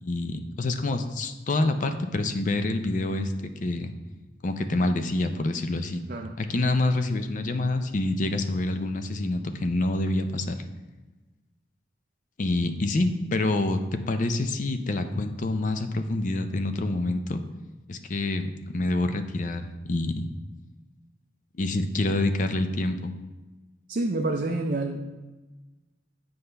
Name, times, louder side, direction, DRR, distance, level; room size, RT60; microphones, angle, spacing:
voice 1, 0.0-3.9 4.4-6.0 6.4-10.6 12.4-13.8 14.1-17.4 17.9-20.3 21.6-23.1, left 2 dB, 40° left, 8 dB, 0.5 m, -27 dB
voice 2, 23.9-25.0, right 2 dB, 45° right, 2 dB, 0.4 m, -28 dB
7.8 x 5.4 x 3.3 m, 1.2 s
head